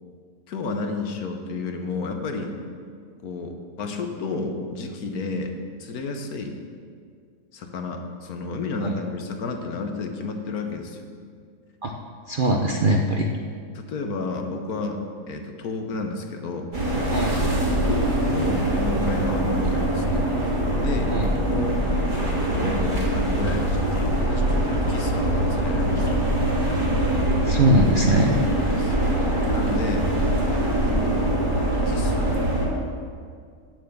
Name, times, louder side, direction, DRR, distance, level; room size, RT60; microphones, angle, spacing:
voice 1, 0.5-2.5 3.2-6.6 7.5-11.1 13.7-17.1 17.8-20.3 20.8-21.1 21.5-21.8 22.5-26.2 28.6-30.1 30.5-31.5 31.9-32.3, left 3 dB, 70° left, 4 dB, 1.5 m, -31 dB
voice 2, 12.3-13.3 17.1-17.5 21.1-21.3 27.1-28.4, right 1 dB, 50° right, 1 dB, 0.6 m, -21 dB
sound 1, 16.7-32.7, right 1 dB, 30° right, 2.3 m, -23 dB
9.0 x 7.7 x 7.1 m, 2.1 s
omnidirectional pair, 1.7 m